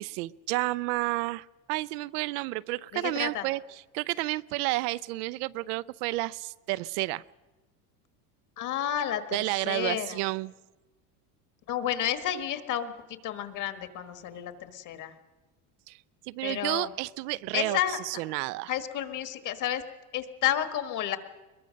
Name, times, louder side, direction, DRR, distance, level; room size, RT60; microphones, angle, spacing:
voice 1, 0.0-7.2 9.3-10.5 15.9-16.0 16.3-18.7, right 20 dB, 75° right, 16 dB, 0.6 m, -31 dB
voice 2, 2.9-3.5 8.6-10.2 11.7-12.9 13.2-15.1 16.4-16.9 17.5-18.0 18.7-19.8 20.1-21.2, left 11 dB, 40° left, 10 dB, 1.6 m, -31 dB
22.5 x 21.5 x 6.5 m, 1.1 s
cardioid pair, 150°, 46 cm